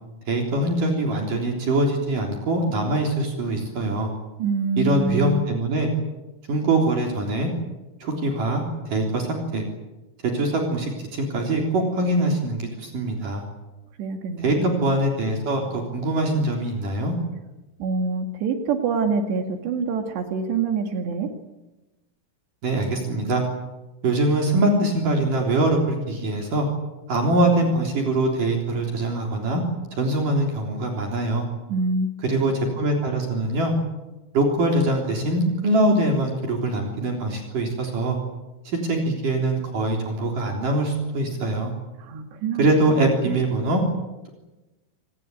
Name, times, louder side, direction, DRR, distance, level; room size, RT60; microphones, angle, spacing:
voice 1, 0.3-4.1 4.8-5.9 6.5-7.5 8.0-8.6 8.9-9.6 10.2-13.4 14.4-17.2 22.6-23.4 24.0-26.7 27.1-29.6 29.9-31.4 32.2-33.7 34.3-38.2 38.6-41.7 42.6-43.8, right 2 dB, 50° right, 2 dB, 5.0 m, -23 dB
voice 2, 4.4-5.4 14.0-14.7 17.8-21.3 31.7-32.1 42.0-42.7 43.3-43.4, right 4 dB, 80° right, 5 dB, 4.2 m, -25 dB
27.5 x 19.0 x 9.3 m, 1.1 s
omnidirectional pair, 4.9 m